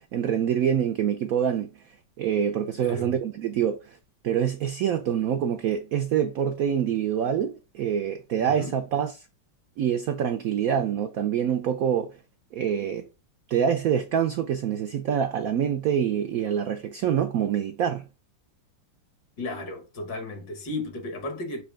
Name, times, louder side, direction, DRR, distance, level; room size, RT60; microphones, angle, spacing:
voice 1, 0.0-1.7 2.2-3.8 4.2-9.1 9.8-12.1 12.5-13.1 13.5-18.0, right 8 dB, 80° right, 0.7 m, -25 dB
voice 2, 2.8-3.1 8.4-8.8 19.4-21.6, left 2 dB, 60° left, 1.9 m, -34 dB
6.6 x 2.9 x 5.0 m
omnidirectional pair, 2.1 m